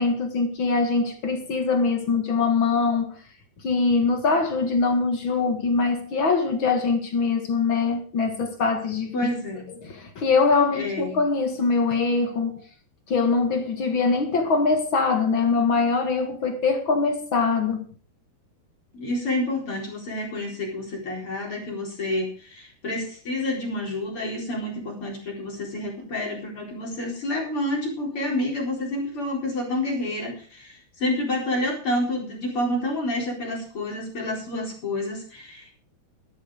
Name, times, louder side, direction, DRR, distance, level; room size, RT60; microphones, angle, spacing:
voice 1, 0.0-3.2 3.6-9.1 9.7-12.6 13.1-17.9, left 4 dB, 50° left, 1.6 m, -23 dB
voice 2, 9.1-9.7 10.7-11.2 18.9-35.7, left 1 dB, 35° left, 4.9 m, -29 dB
13.0 x 11.5 x 5.0 m
omnidirectional pair, 4.7 m